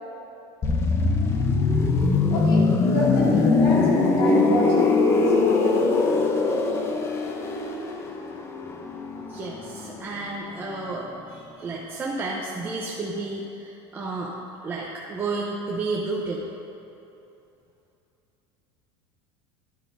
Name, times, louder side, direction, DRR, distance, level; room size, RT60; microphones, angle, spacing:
sound 1, 0.6-10.3 10.5-10.8, left 3 dB, 20° left, 0.6 m, -22 dB
voice 1, 2.3-5.9, left 1 dB, 65° left, -5 dB, 2.3 m, -28 dB
voice 2, 9.3-14.4 14.6-16.4, right 3 dB, 15° right, -4 dB, 0.6 m, -31 dB
11.0 x 10.0 x 2.6 m, 2.9 s
cardioid pair, 160°, 13 cm